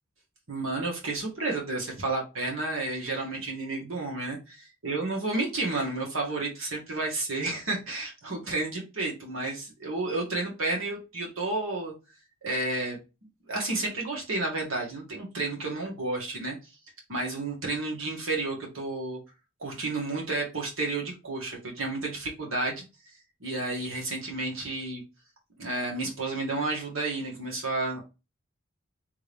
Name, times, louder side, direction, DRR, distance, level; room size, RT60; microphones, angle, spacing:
voice 1, 0.5-11.9 12.4-13.0 13.5-16.6 17.1-19.2 19.6-22.9 23.4-25.0 25.6-28.0, right 2 dB, 80° right, -1 dB, 1.7 m, -31 dB
3.5 x 2.9 x 3.4 m, 0.28 s
head